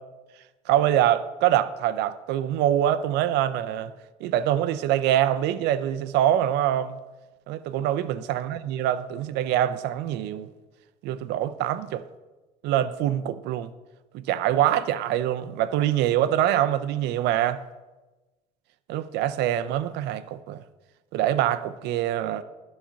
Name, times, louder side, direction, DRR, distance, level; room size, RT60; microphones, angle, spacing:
voice 1, 0.7-3.9 4.2-7.0 7.5-10.5 11.0-12.0 12.6-13.7 14.1-17.6 18.9-20.6 21.1-22.4, right 11 dB, 85° right, 0.5 m, -24 dB
11.5 x 4.3 x 5.7 m
cardioid pair, 110°, 17 cm